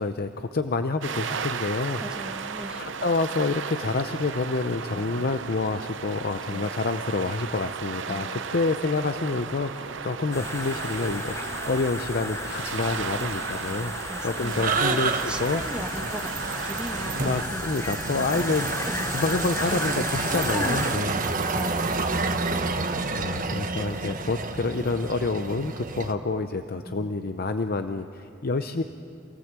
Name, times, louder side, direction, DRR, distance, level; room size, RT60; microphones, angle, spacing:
voice 1, 0.0-2.0 2.7-15.6 17.1-21.1 23.1-28.8, left 3 dB, 50° left, 8 dB, 0.7 m, -28 dB
sound 1, 1.0-17.4, right 6 dB, 65° right, 0.8 m, -35 dB
voice 2, 2.0-2.9 4.9-5.2 6.5-6.7 8.1-8.5 13.6-14.7 15.3-16.3 16.6-18.1 18.9-19.2 19.6-19.8 20.2-20.8 21.5-21.9 26.7-27.1, equal, 5° right, 3 dB, 1.4 m, -38 dB
sound 2, 10.3-21.0, left 2 dB, 15° left, 0.9 m, -34 dB
sound 3, 14.5-26.1, right 3 dB, 45° right, 1.2 m, -29 dB
28.0 x 18.0 x 7.5 m, 2.6 s
head